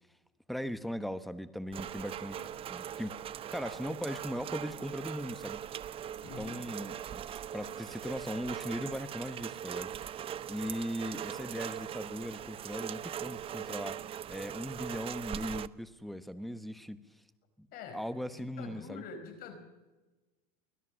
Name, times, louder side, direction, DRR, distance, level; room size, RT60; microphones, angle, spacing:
voice 1, 0.5-3.2 3.5-5.6 6.4-14.0 14.3-17.0 17.6-17.7 17.9-19.0, equal, ahead, 12 dB, 1.0 m, -39 dB
Rain, 1.7-15.7, right 10 dB, 25° right, 0.6 m, -41 dB
voice 2, 6.2-6.6 17.7-18.0 18.3-19.6, left 6 dB, 45° left, 7 dB, 4.7 m, -45 dB
24.5 x 16.5 x 6.3 m, 1.2 s
supercardioid pair, 130°, 21 cm